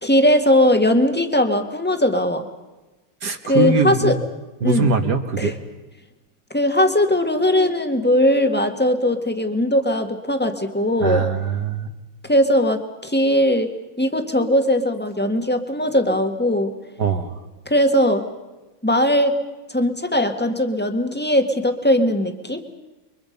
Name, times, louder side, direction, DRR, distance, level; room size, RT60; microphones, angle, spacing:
voice 1, 0.0-2.5 3.4-4.2 4.6-4.9 5.4-5.5 6.5-11.2 12.2-16.7 17.6-18.3 18.8-19.4 19.7-22.6, left 1 dB, 5° left, 6 dB, 1.6 m, -19 dB
voice 2, 3.2-4.2 4.6-5.5 11.0-11.9 17.0-17.3, right 4 dB, 50° right, 7 dB, 2.1 m, -21 dB
29.5 x 24.0 x 5.4 m, 1.1 s
omnidirectional pair, 2.3 m